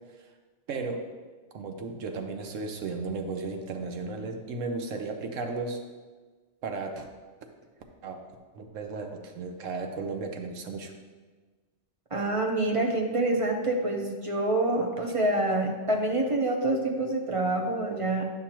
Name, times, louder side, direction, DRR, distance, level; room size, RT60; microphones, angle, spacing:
voice 1, 0.7-1.0 1.5-5.8 6.6-7.1 8.0-8.2 8.5-10.9, right 3 dB, 80° right, 5 dB, 1.1 m, -34 dB
voice 2, 12.1-18.2, right 2 dB, 30° right, 2 dB, 0.7 m, -27 dB
10.5 x 5.8 x 3.0 m, 1.4 s
omnidirectional pair, 1.3 m